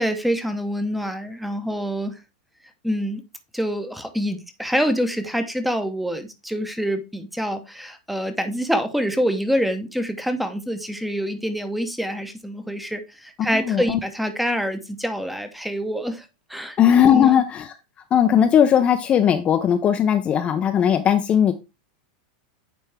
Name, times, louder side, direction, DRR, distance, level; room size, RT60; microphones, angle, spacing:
voice 1, 0.0-2.2 2.8-3.2 3.5-16.8 17.1-17.3, equal, ahead, 0.8 m, -26 dB
voice 2, 13.5-14.0 16.8-17.7 18.1-21.5, left 9 dB, 25° left, 0.5 m, -18 dB
9.1 x 3.4 x 3.3 m
supercardioid pair, 140°, 4 cm